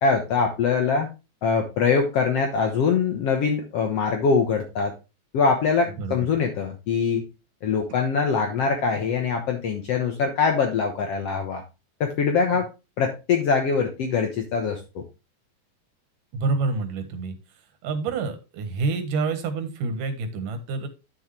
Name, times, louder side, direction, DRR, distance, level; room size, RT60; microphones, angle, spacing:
voice 1, 0.0-1.1 1.4-4.9 5.3-7.2 7.6-11.6 12.0-12.7 13.0-15.0, left 5 dB, 60° left, 3 dB, 2.0 m, -23 dB
voice 2, 6.0-6.3 8.9-9.0 12.5-12.6 16.3-17.4 17.8-20.9, right 4 dB, 85° right, 8 dB, 3.0 m, -28 dB
10.5 x 6.4 x 3.3 m, 0.27 s
omnidirectional pair, 3.7 m